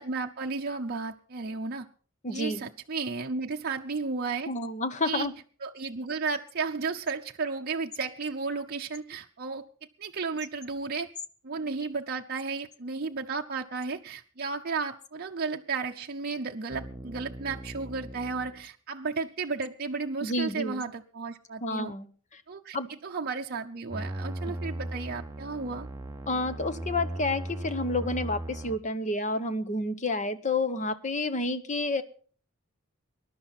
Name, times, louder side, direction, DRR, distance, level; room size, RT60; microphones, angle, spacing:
voice 1, 0.0-1.9 2.3-4.5 5.0-5.3 5.6-9.7 10.0-11.1 11.4-21.9 22.5-25.9, right 4 dB, 50° right, 2 dB, 0.7 m, -33 dB
voice 2, 2.2-2.7 4.5-5.3 20.2-20.8 21.6-22.1 22.7-22.9 26.3-32.0, left 2 dB, 35° left, 11 dB, 1.1 m, -30 dB
sound 1, 16.7-18.6 23.9-28.8, right 1 dB, 15° right, 0.8 m, -38 dB
20.5 x 11.5 x 4.2 m, 0.42 s
head